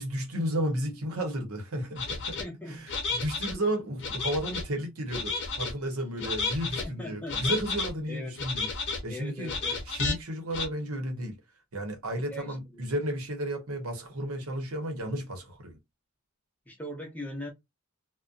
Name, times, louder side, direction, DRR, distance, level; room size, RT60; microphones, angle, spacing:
voice 1, 0.0-2.4 2.7-2.8 3.1-9.5 9.9-11.4 11.7-15.8, equal, 80° right, 0.9 m, -33 dB
sound 1, 2.0-2.4 2.9-3.5 4.0-4.7 5.1-5.7 6.2-6.8 7.3-7.9 8.4-9.0 9.5-10.1 10.5-10.7, left 4 dB, 55° left, 0.6 m, -32 dB
voice 2, 2.4-2.9 3.5-3.6 6.8-7.6 8.1-8.5 9.1-9.8 12.3-12.8 16.7-17.5, left 1 dB, 5° left, 0.6 m, -40 dB
2.6 x 2.1 x 2.4 m
head